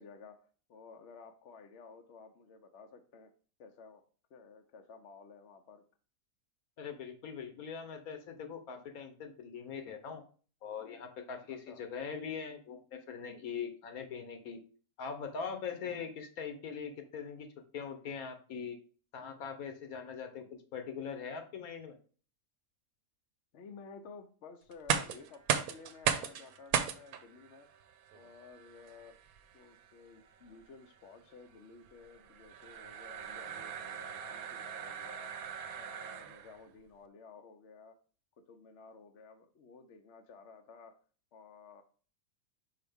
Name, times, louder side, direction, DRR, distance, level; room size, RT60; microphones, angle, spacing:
voice 1, 0.0-3.3 3.6-4.0 4.3-5.8 11.4-11.8 15.8-16.1 23.5-27.7 28.1-29.2 29.5-35.4 35.7-38.0 38.4-41.0 41.3-41.8, left 4 dB, 60° left, 7 dB, 0.9 m, -54 dB
voice 2, 6.8-10.2 10.6-14.6 15.0-18.8 19.1-20.4 20.7-22.0, left 6 dB, 75° left, 6 dB, 1.4 m, -42 dB
sound 1, 24.7-36.6, right 8 dB, 80° right, 1.1 m, -38 dB
5.7 x 4.8 x 3.5 m, 0.40 s
omnidirectional pair, 1.5 m